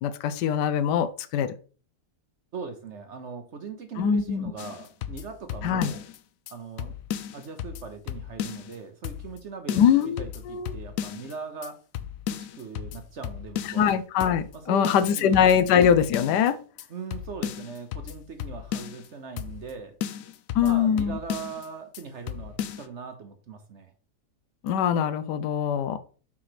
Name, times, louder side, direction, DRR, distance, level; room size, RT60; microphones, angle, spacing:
voice 1, 0.0-1.5 4.0-4.5 5.6-5.9 9.7-10.7 13.7-16.6 20.5-21.2 24.6-26.0, left 8 dB, 85° left, 1.2 m, -23 dB
voice 2, 2.5-6.0 6.5-7.0 7.3-11.8 12.3-13.9 14.5-15.4 16.9-20.0 20.6-23.9, right 5 dB, 55° right, 0.9 m, -40 dB
sound 1, 4.6-6.2 6.5-6.6 6.8-8.8 9.0-9.4 9.7-11.3 11.6-11.7 11.9-13.9 14.2-14.6 14.8-16.5 16.8-16.9 17.1-19.1 19.4-19.7 20.0-21.7 21.9-22.0 22.3-22.9, left 10 dB, 70° left, 0.8 m, -35 dB
6.0 x 3.2 x 5.8 m
omnidirectional pair, 1.8 m